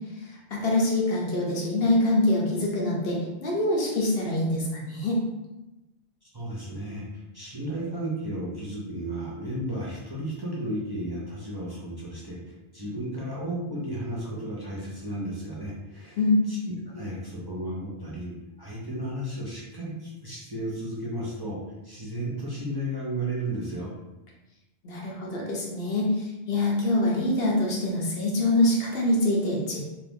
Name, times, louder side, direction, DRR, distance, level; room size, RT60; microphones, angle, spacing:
voice 1, 0.2-5.2 16.2-16.4 24.8-29.8, left 1 dB, 65° left, -3 dB, 1.0 m, -25 dB
voice 2, 6.3-16.2 16.5-18.3 18.6-21.6 21.8-23.9, right 1 dB, 25° right, -7 dB, 0.6 m, -33 dB
2.6 x 2.5 x 3.5 m, 1.0 s
omnidirectional pair, 1.1 m